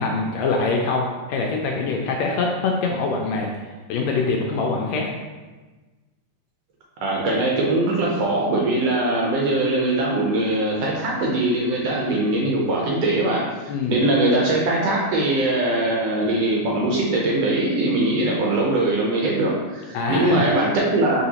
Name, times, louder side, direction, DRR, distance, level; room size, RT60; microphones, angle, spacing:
voice 1, 0.0-3.5 3.9-5.1 13.7-14.0 19.9-20.4, left 3 dB, 80° left, 0 dB, 1.6 m, -24 dB
voice 2, 7.0-13.4 13.9-21.2, right 2 dB, 75° right, -3 dB, 1.6 m, -21 dB
4.9 x 3.9 x 2.8 m, 1.3 s
omnidirectional pair, 3.3 m